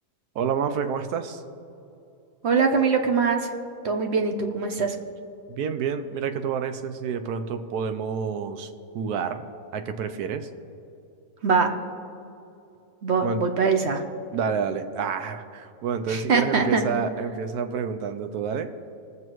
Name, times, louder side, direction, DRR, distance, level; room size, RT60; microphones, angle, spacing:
voice 1, 0.3-1.4 5.5-8.7 8.9-9.5 9.7-10.5 13.2-13.4 14.3-18.7, right 6 dB, 75° right, 9 dB, 1.2 m, -28 dB
voice 2, 2.4-3.5 3.8-5.0 11.4-11.7 13.0-14.0 16.1-16.8, right 5 dB, 50° right, 4 dB, 1.0 m, -22 dB
21.0 x 7.7 x 3.1 m, 2.7 s
omnidirectional pair, 1.7 m